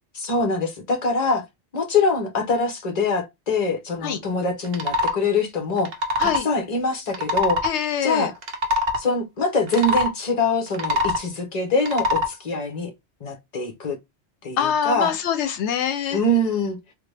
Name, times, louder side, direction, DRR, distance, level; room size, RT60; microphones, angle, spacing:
voice 1, 0.1-1.4 1.7-5.9 6.2-7.6 8.0-8.3 9.0-12.9 13.2-14.0 14.4-15.2 16.1-16.8, left 2 dB, 40° left, 1.0 m, -24 dB
sound 1, 4.6-5.2 5.8-6.4 7.1-7.7 8.4-9.0 9.7-10.1 10.7-11.3 11.8-12.3, left 2 dB, 55° right, 0.7 m, -23 dB
voice 2, 7.6-8.3 14.6-16.2, left 8 dB, 85° left, 0.9 m, -24 dB
3.4 x 2.3 x 3.2 m
omnidirectional pair, 1.1 m